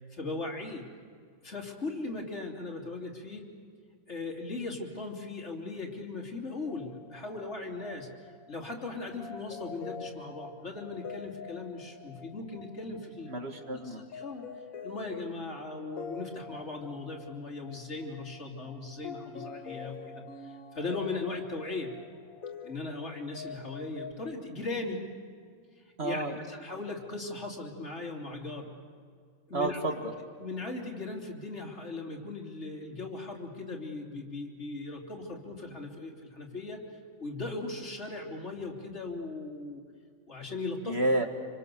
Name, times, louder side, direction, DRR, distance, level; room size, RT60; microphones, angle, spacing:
voice 1, 0.1-0.8 1.4-3.4 4.1-13.3 13.8-14.4 14.8-21.9 22.6-25.0 25.8-28.8 29.5-29.8 30.4-36.8 37.2-39.8 40.3-41.0, left 3 dB, 55° left, 1 dB, 3.4 m, -38 dB
sound 1, 6.6-24.1, left 5 dB, 85° left, 1.7 m, -46 dB
voice 2, 13.2-14.0 26.0-26.4 29.5-30.0 40.8-41.2, right 2 dB, 50° right, 4 dB, 2.2 m, -30 dB
27.0 x 25.5 x 6.9 m, 2.2 s
omnidirectional pair, 1.4 m